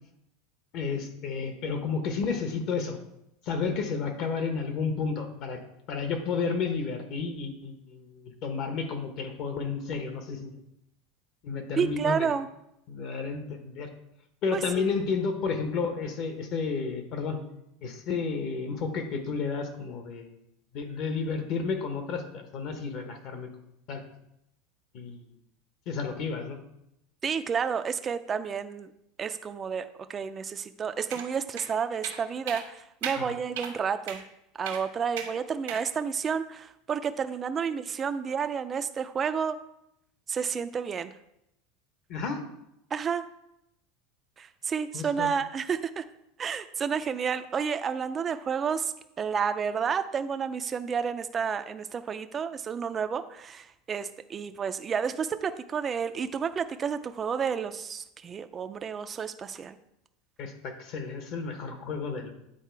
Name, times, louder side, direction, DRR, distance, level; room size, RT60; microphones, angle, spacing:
voice 1, 0.7-3.0 3.4-5.6 5.9-10.5 11.4-12.3 12.9-13.9 14.4-17.4 17.8-20.4 20.7-23.5 23.9-24.0 24.9-25.2 25.9-26.6 33.2-33.3 42.1-42.4 44.9-45.3 60.4-62.3, left 5 dB, 45° left, 6 dB, 1.2 m, -31 dB
voice 2, 11.8-12.5 14.5-14.9 27.2-28.9 29.2-34.2 34.6-39.6 40.3-41.1 42.9-43.2 44.4-46.0 46.4-59.8, right 6 dB, 20° right, 10 dB, 0.4 m, -30 dB
sound 1, 31.1-31.3 31.6-31.7 32.0-32.2 32.5-32.7 33.0-33.2 33.6-33.7 34.1-34.2 34.7-34.8 35.2-35.3 35.7-35.8, right 9 dB, 85° right, 1.4 m, -36 dB
9.2 x 4.1 x 4.6 m, 0.82 s
supercardioid pair, 150°, 0 cm